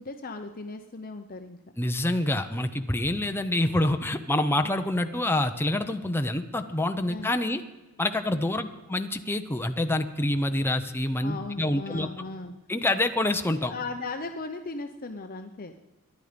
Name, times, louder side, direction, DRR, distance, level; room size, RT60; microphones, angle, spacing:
voice 1, 0.0-1.6 7.1-7.3 8.6-8.7 11.2-12.5 13.6-15.7, left 3 dB, 40° left, 6 dB, 0.8 m, -37 dB
voice 2, 1.8-7.6 8.0-8.6 8.9-12.1 12.7-13.7, left 1 dB, 10° left, 6 dB, 0.8 m, -26 dB
24.0 x 11.0 x 5.2 m, 1.1 s
head